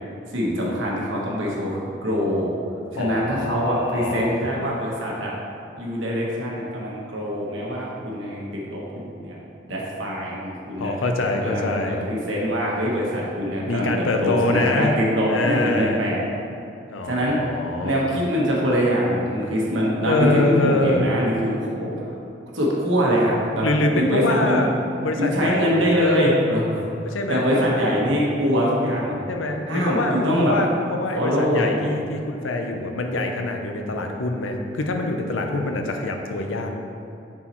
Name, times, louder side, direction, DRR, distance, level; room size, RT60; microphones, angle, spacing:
voice 1, 0.3-2.5 2.9-5.3 5.8-9.4 9.7-10.9 11.4-16.2 17.0-21.9 22.5-23.7 24.0-24.6 25.2-26.8 27.3-29.2 29.7-30.6 31.1-31.9, equal, 80° right, -4 dB, 1.3 m, -23 dB
voice 2, 3.0-4.4 10.8-12.0 13.7-14.9 15.3-16.0 16.9-18.0 20.0-21.1 23.6-24.7 25.0-26.4 27.0-27.5 29.3-36.8, left 2 dB, 90° left, 3 dB, 0.6 m, -24 dB
7.0 x 4.6 x 3.0 m, 2.7 s
head